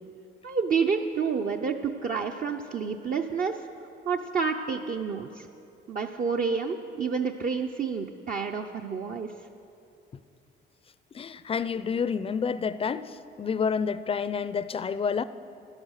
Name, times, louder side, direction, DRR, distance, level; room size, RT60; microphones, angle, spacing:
voice 1, 0.4-3.6 4.0-5.5 5.9-9.3, right 5 dB, 45° right, 3 dB, 0.6 m, -29 dB
voice 2, 11.1-15.2, left 6 dB, 30° left, 15 dB, 0.4 m, -29 dB
11.5 x 10.5 x 6.5 m, 2.7 s
cardioid pair, 90°, 20 cm